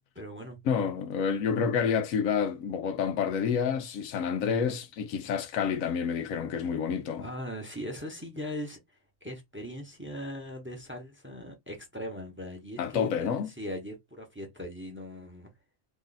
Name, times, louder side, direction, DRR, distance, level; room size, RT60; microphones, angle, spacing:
voice 1, 0.1-0.6 7.2-8.8 9.2-15.5, equal, 10° right, 0.9 m, -39 dB
voice 2, 0.7-7.3 12.8-13.5, left 7 dB, 85° left, 1.1 m, -29 dB
3.1 x 2.5 x 3.9 m
omnidirectional pair, 1.4 m